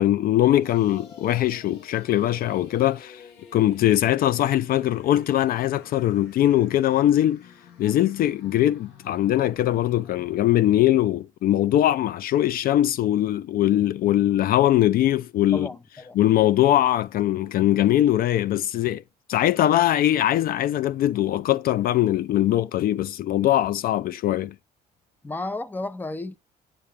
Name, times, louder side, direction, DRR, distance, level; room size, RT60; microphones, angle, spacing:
voice 1, 0.0-3.2 3.5-7.4 7.8-15.7 16.2-19.0 19.3-24.5, left 13 dB, 60° left, 0.4 m, -21 dB
sound 1, 0.6-10.4, left 6 dB, 85° left, 2.7 m, -49 dB
voice 2, 15.5-16.2 25.2-26.4, left 2 dB, 10° left, 0.6 m, -32 dB
8.5 x 7.7 x 3.4 m
cardioid pair, 110°, 17 cm